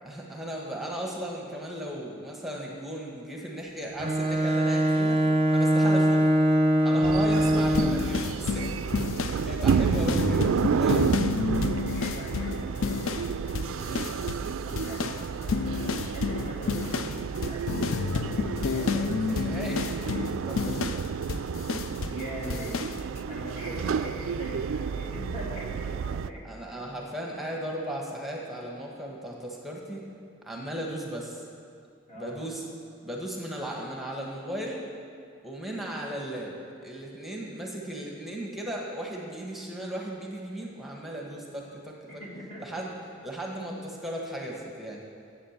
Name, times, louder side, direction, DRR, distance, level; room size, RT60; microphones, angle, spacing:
voice 1, 0.0-5.2 5.5-6.3 6.8-8.9 9.4-10.5 10.8-11.1 18.7-21.1 22.4-22.7 23.8-23.9 26.4-30.1 30.4-31.4 32.1-32.6 33.0-34.8 35.4-36.5 36.8-42.2 42.6-42.9 43.2-45.0, right 1 dB, ahead, -2 dB, 1.3 m, -36 dB
Bowed string instrument, 4.0-8.2, right 1 dB, 30° right, 0.6 m, -22 dB
voice 2, 6.8-7.1 9.2-9.6 11.5-17.9 18.1-18.5 22.1-22.8 23.3-26.4 26.7-26.9 32.1-32.4 42.1-42.6, equal, 40° left, -4 dB, 2.9 m, -42 dB
sound 1, 7.0-26.3, right 6 dB, 80° right, 0.4 m, -30 dB
sound 2, 7.7-13.3 13.5-14.5 14.8-22.2 22.5-23.0, left 5 dB, 85° left, 0.5 m, -30 dB
11.0 x 8.0 x 7.2 m, 2.4 s
head